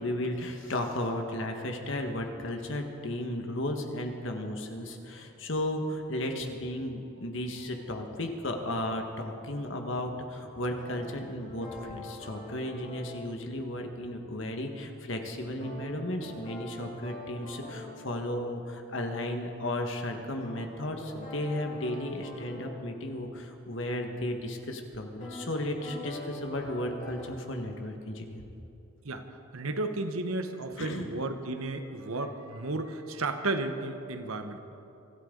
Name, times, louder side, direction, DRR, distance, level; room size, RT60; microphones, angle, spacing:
voice 1, 0.0-28.4 30.8-31.1, left 1 dB, 65° left, 4 dB, 1.6 m, -34 dB
sound 1, 10.8-13.1 15.6-18.0 20.4-22.7 25.2-25.4 25.8-27.2, left 1 dB, 40° left, 4.3 m, -44 dB
voice 2, 29.5-34.6, right 2 dB, 90° right, 7 dB, 1.1 m, -33 dB
24.5 x 13.0 x 3.9 m, 2.8 s
head